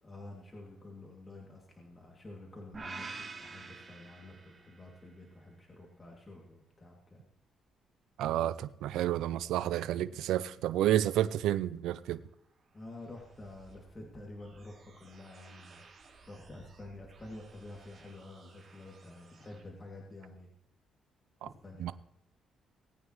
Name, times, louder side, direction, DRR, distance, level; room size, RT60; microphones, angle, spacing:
voice 1, 0.0-7.3 9.9-10.2 12.7-15.8 16.3-20.5 21.4-21.9, left 2 dB, 25° left, 2.5 m, -49 dB
sound 1, 2.7-4.9, right 4 dB, 30° right, 1.8 m, -45 dB
voice 2, 8.2-12.2 21.4-21.5 21.8-21.9, right 12 dB, 85° right, 0.5 m, -30 dB
sound 2, 12.0-19.6, right 4 dB, 50° right, 5.0 m, -59 dB
19.0 x 9.3 x 3.1 m
cardioid pair, 90°, 0 cm